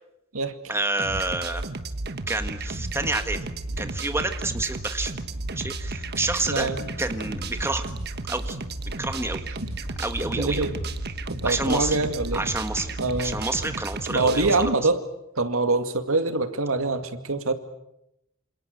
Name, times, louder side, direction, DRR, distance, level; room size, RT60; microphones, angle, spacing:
voice 1, 0.7-1.6 2.3-3.5 3.8-5.1 5.5-6.7 7.0-7.8 8.3-8.6 9.0-9.4 10.0-10.6 11.4-12.0 12.3-12.9 13.2-14.8, right 2 dB, 10° right, 7 dB, 1.7 m, -28 dB
sound 1, 1.0-14.7, right 2 dB, 50° right, 1.3 m, -33 dB
sound 2, 2.4-13.7, left 1 dB, 55° left, 1.4 m, -41 dB
voice 2, 6.5-6.8 10.4-10.7 11.4-12.4 13.0-13.4 14.1-15.0 15.4-17.5, right 3 dB, 80° right, 8 dB, 2.3 m, -24 dB
27.5 x 27.5 x 6.7 m, 0.82 s
head